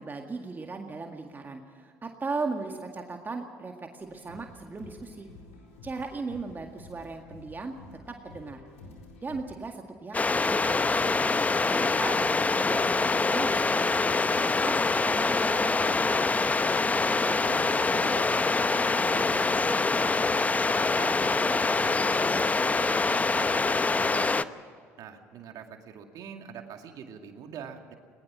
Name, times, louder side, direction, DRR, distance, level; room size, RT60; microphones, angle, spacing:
voice 1, 0.0-5.3 5.8-7.8 8.1-8.6 9.2-11.1 11.6-14.4 14.6-16.0, right 3 dB, 30° right, 3 dB, 1.9 m, -37 dB
sound 1, 4.0-9.4, left 2 dB, 90° left, 4.2 m, -50 dB
sound 2, 10.1-24.4, left 3 dB, 20° left, 0.8 m, -25 dB
voice 2, 17.1-24.5 25.0-27.9, right 8 dB, 60° right, 5 dB, 2.2 m, -44 dB
21.0 x 20.5 x 6.2 m, 2.2 s
hypercardioid pair, 65°, 7 cm